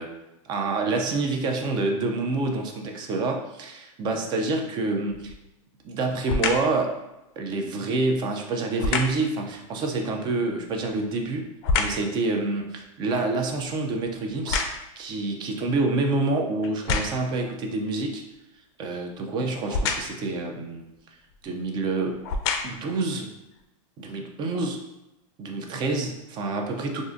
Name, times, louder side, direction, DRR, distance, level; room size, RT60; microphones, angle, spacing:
voice 1, 0.5-5.3 5.8-7.0 7.4-11.5 11.8-14.6 15.0-18.2 18.8-20.8 21.4-22.2 22.6-23.3 24.0-24.8 25.4-27.0, right 3 dB, 25° right, 3 dB, 0.4 m, -27 dB
sound 1, 5.1-5.5 6.2-6.8 8.8-9.3 10.7-12.1 12.6-15.1 15.8-15.9 16.6-17.4 19.7-20.3 21.3-21.4 22.1-22.9 23.6-23.7, left 4 dB, 50° left, 0.4 m, -28 dB
3.6 x 2.5 x 2.5 m, 0.96 s
supercardioid pair, 150°, 17 cm